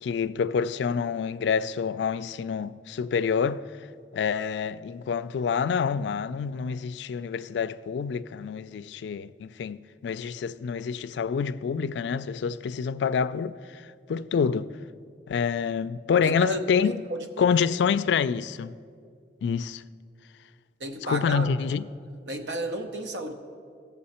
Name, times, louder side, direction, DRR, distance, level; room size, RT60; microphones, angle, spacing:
voice 1, 0.0-3.9 4.1-14.8 15.3-17.0 17.4-18.7 19.4-19.8 21.0-21.9, left 6 dB, 85° left, 0.3 m, -27 dB
voice 2, 16.2-17.2 20.8-21.5 22.3-23.3, equal, 90° right, 0.9 m, -32 dB
16.5 x 7.0 x 4.3 m
head